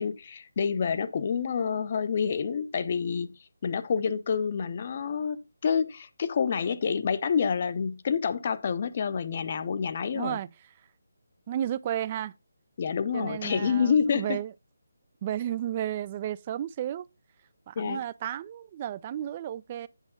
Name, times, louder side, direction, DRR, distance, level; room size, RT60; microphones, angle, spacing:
voice 1, 0.0-10.4 12.8-14.4 17.8-18.0, left 6 dB, 40° left, 0.8 m, -28 dB
voice 2, 10.1-10.5 11.5-12.3 13.1-14.5 15.2-17.1 17.7-19.9, right 11 dB, 30° right, 0.4 m, -33 dB
8.2 x 7.2 x 3.7 m
figure-of-eight pair, 155°, 0 cm